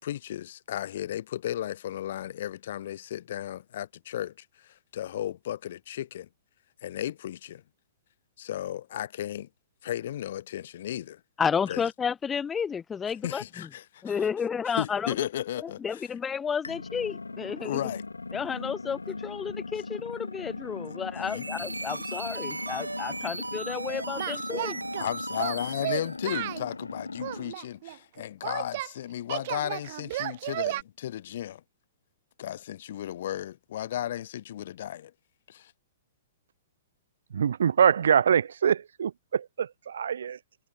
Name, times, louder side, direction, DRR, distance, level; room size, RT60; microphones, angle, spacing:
voice 1, 0.0-6.3 6.8-7.6 8.4-9.5 9.8-11.2 11.7-11.8 13.2-14.3 14.8-16.0 17.6-18.0 21.2-21.5 25.0-31.6 32.4-35.1 35.5-35.7, left 11 dB, 55° left, 3.7 m, -35 dB
voice 2, 11.4-13.7 14.0-15.1 15.6-17.8 18.3-24.8, left 7 dB, 15° left, 2.0 m, -31 dB
sound 1, 16.6-27.5, left 3 dB, 85° left, 3.5 m, -39 dB
sound 2, 21.1-26.2, right 2 dB, 90° right, 7.0 m, -37 dB
Singing, 24.2-25.1 25.4-26.7 27.2-28.9 29.3-30.8, right 16 dB, 50° right, 2.7 m, -33 dB
voice 3, 37.3-39.4 39.9-40.4, right 8 dB, 65° right, 3.5 m, -23 dB
figure-of-eight pair, 110°, 0 cm